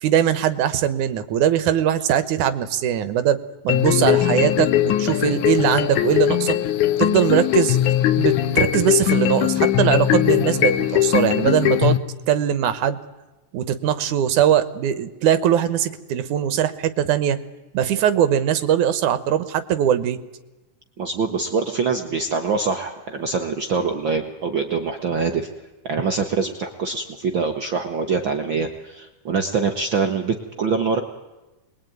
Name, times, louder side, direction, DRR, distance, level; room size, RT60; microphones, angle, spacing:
voice 1, 0.0-3.4 3.6-6.6 7.0-12.0 12.3-13.0 13.5-17.4 17.7-20.2, right 10 dB, 80° right, 13 dB, 2.6 m, -21 dB
sound 1, 3.7-12.0, left 12 dB, 85° left, 2.5 m, -20 dB
voice 2, 21.0-25.5 25.8-31.0, right 5 dB, 55° right, 5 dB, 1.5 m, -24 dB
26.0 x 21.5 x 9.3 m, 1.1 s
omnidirectional pair, 3.5 m